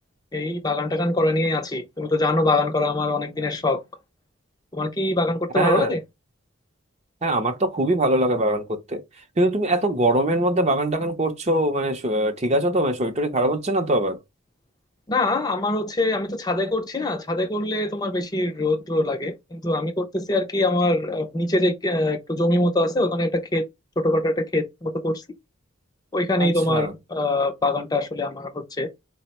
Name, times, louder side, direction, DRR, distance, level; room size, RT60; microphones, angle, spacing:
voice 1, 0.3-3.8 4.7-6.0 15.1-23.6 24.0-25.1 26.1-28.9, left 2 dB, 20° left, 0.4 m, -23 dB
voice 2, 5.5-5.9 7.2-9.0 9.4-14.2 26.4-26.9, right 1 dB, 30° right, 0.5 m, -22 dB
4.1 x 2.0 x 4.1 m
head